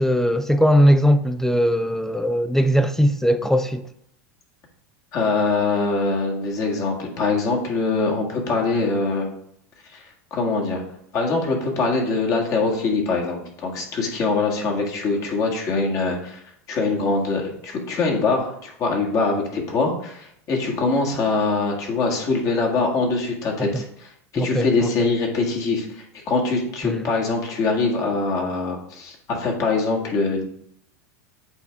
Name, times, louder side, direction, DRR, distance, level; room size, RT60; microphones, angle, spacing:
voice 1, 0.0-3.9 23.7-23.8 24.4-24.9 26.8-27.1, equal, 5° left, 0.3 m, -19 dB
voice 2, 5.1-9.3 9.9-10.0 10.3-10.8 11.1-16.4 16.7-30.5, left 3 dB, 40° left, 1.8 m, -23 dB
8.3 x 3.6 x 3.5 m
supercardioid pair, 115°, 8 cm